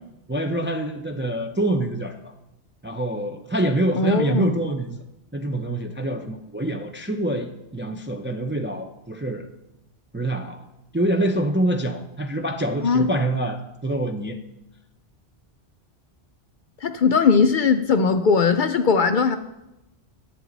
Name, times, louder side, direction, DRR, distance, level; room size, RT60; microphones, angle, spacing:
voice 1, 0.3-2.3 2.8-5.0 5.3-9.5 10.1-10.6 10.9-14.4, right 1 dB, 15° right, 4 dB, 0.4 m, -25 dB
voice 2, 3.9-4.5 12.8-13.1 16.8-19.4, left 5 dB, 60° left, 9 dB, 0.6 m, -19 dB
11.0 x 9.3 x 3.9 m, 0.93 s
omnidirectional pair, 1.1 m